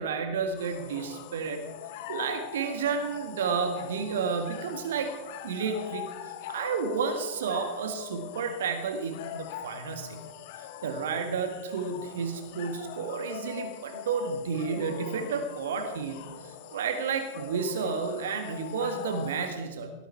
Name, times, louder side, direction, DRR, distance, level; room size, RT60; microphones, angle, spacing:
voice 1, 0.0-1.6 2.1-5.1 5.4-10.2 10.8-19.9, right 5 dB, 60° right, 7 dB, 1.7 m, -31 dB
sound 1, 0.6-19.5, left 11 dB, 50° left, 1.4 m, -43 dB
17.0 x 13.5 x 4.7 m, 1.1 s
figure-of-eight pair, 90°, 0 cm